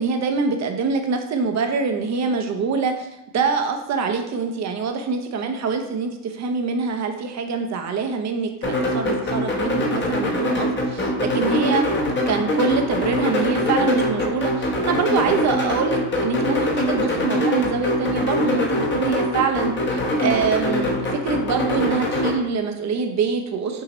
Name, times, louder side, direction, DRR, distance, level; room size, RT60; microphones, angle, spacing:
voice 1, 0.0-3.1 3.3-11.8 12.3-23.8, right 4 dB, 35° right, 5 dB, 0.6 m, -25 dB
sound 1, 8.6-22.3, left 1 dB, 25° left, 0.9 m, -23 dB
6.1 x 2.8 x 3.0 m, 0.88 s
supercardioid pair, 115°, 49 cm